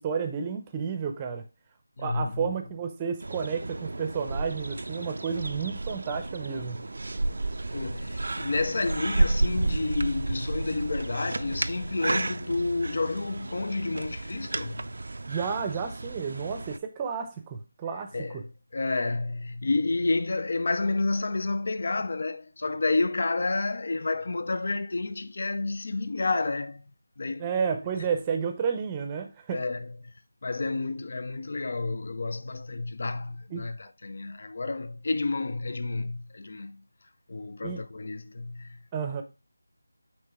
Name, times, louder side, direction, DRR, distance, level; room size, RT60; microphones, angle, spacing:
voice 1, 0.0-1.5 2.0-6.9 15.3-18.4 27.4-29.6 33.5-33.7 37.6-37.8 38.9-39.2, right 6 dB, 15° right, 0.6 m, -31 dB
voice 2, 2.0-2.5 7.7-14.9 18.1-18.4 18.7-26.8 27.2-27.5 29.5-30.1 30.4-36.8 37.3-38.8, left 3 dB, 50° left, 0.4 m, -30 dB
sound 1, 3.2-16.8, right 2 dB, 65° right, 0.4 m, -32 dB
8.8 x 3.3 x 3.6 m
figure-of-eight pair, 170°, 0 cm